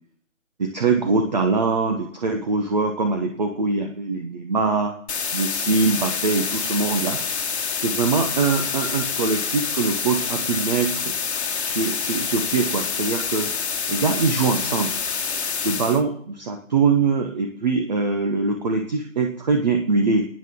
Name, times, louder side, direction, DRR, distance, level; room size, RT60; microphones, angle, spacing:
voice 1, 0.6-4.9 5.3-7.2 7.8-11.0 11.6-13.5 13.9-14.9 15.6-20.3, right 4 dB, 30° right, 3 dB, 1.2 m, -23 dB
sound 1, 5.1-16.0, left 6 dB, 55° left, 1.3 m, -27 dB
29.5 x 9.9 x 3.8 m, 0.64 s
hypercardioid pair, 165°, 40 cm